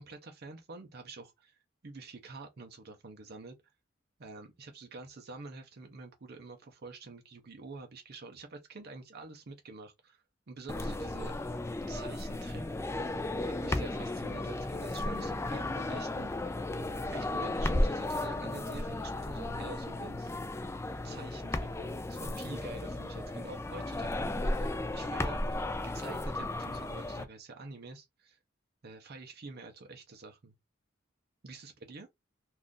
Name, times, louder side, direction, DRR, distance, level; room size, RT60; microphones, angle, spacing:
voice 1, 0.0-3.6 4.2-11.4 11.9-12.6 13.5-16.3 17.1-20.3 21.0-25.4 25.8-28.4 28.8-30.6 31.4-32.1, right 3 dB, 55° right, 0.6 m, -47 dB
sound 1, 10.7-27.2, left 2 dB, 15° left, 0.3 m, -34 dB
2.5 x 2.4 x 3.6 m
head